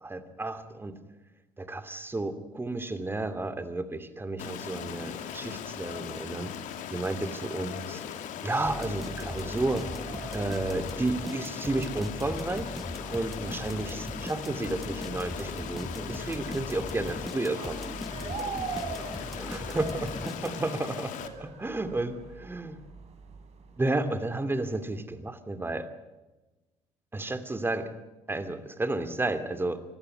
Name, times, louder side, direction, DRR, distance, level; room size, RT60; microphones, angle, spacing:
voice 1, 0.0-1.0 1.6-6.5 6.9-8.0 8.4-9.9 10.3-12.7 13.1-17.8 19.4-22.8 23.8-25.9 27.1-27.9 28.3-29.8, right 2 dB, 15° right, 11 dB, 2.6 m, -32 dB
Stream, 4.4-21.3, left 8 dB, 70° left, 2.4 m, -39 dB
sound 1, 4.7-23.8, right 5 dB, 55° right, 3.8 m, -45 dB
sound 2, 8.6-20.9, equal, ahead, 0.8 m, -40 dB
25.0 x 15.0 x 9.7 m, 1.1 s
supercardioid pair, 90°, 13 cm